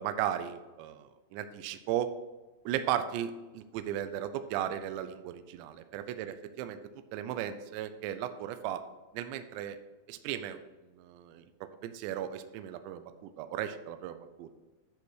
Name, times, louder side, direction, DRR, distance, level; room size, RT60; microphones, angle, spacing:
voice 1, 0.0-2.1 2.7-6.8 7.1-8.8 9.1-9.8 10.1-10.6 11.0-11.4 11.8-14.5, right 11 dB, 85° right, 9 dB, 2.5 m, -36 dB
11.0 x 4.0 x 6.2 m, 1.2 s
omnidirectional pair, 5.8 m